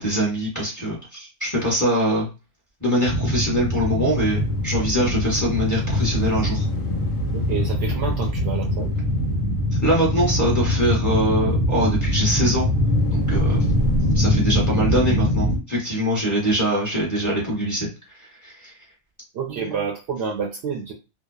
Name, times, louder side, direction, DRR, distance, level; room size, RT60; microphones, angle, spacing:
voice 1, 0.0-2.3 2.8-6.7 9.8-12.7 13.1-13.6 14.1-17.9 18.4-18.7, equal, 15° left, -4 dB, 0.8 m, -23 dB
sound 1, 3.0-15.6, left 1 dB, 80° left, 1.2 m, -22 dB
voice 2, 7.3-9.0 19.3-20.9, right 6 dB, 65° right, 1 dB, 0.7 m, -29 dB
2.7 x 2.1 x 2.3 m, 0.30 s
omnidirectional pair, 1.3 m